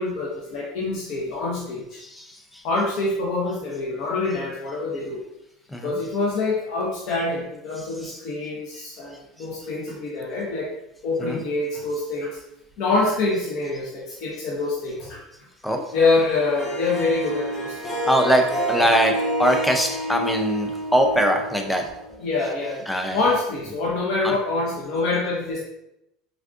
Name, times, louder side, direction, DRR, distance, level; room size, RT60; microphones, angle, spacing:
voice 1, 0.0-2.0 2.6-5.2 5.8-10.7 11.0-12.4 12.8-15.2 15.9-17.9 18.2-18.9 22.2-25.6, left 3 dB, 60° left, -4 dB, 0.7 m, -26 dB
Harp, 15.9-22.2, right 1 dB, 25° left, 1.1 m, -29 dB
voice 2, 18.0-18.4 18.7-19.1 19.4-21.8 22.9-23.2 24.2-24.3, equal, 5° left, 4 dB, 0.4 m, -21 dB
3.4 x 2.4 x 2.4 m, 0.84 s
supercardioid pair, 130°, 0 cm